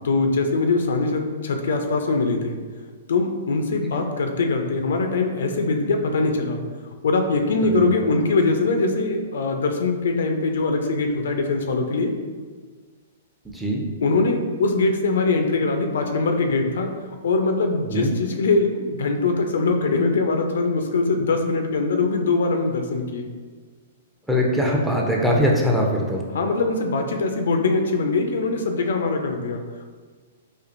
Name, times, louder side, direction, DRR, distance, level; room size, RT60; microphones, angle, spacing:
voice 1, 0.0-2.6 3.1-6.6 7.0-12.1 14.0-16.9 17.2-23.3 26.3-29.8, left 3 dB, 75° left, 4 dB, 0.4 m, -22 dB
voice 2, 24.3-26.2, equal, 5° right, -2 dB, 0.6 m, -21 dB
4.3 x 2.5 x 2.5 m, 1.5 s
hypercardioid pair, 125°, 0 cm